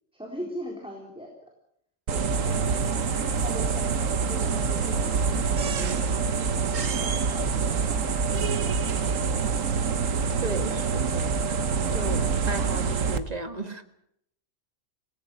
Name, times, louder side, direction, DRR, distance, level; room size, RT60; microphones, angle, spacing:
voice 1, 0.1-1.3 2.1-3.1 3.4-6.1 6.7-8.9, equal, 5° right, -1 dB, 4.0 m, -41 dB
sound 1, 2.1-13.2, right 5 dB, 65° right, 1.6 m, -26 dB
voice 2, 10.4-11.6 11.9-13.8, right 2 dB, 30° right, 7 dB, 1.9 m, -35 dB
27.0 x 18.5 x 6.5 m, 0.72 s
omnidirectional pair, 1.5 m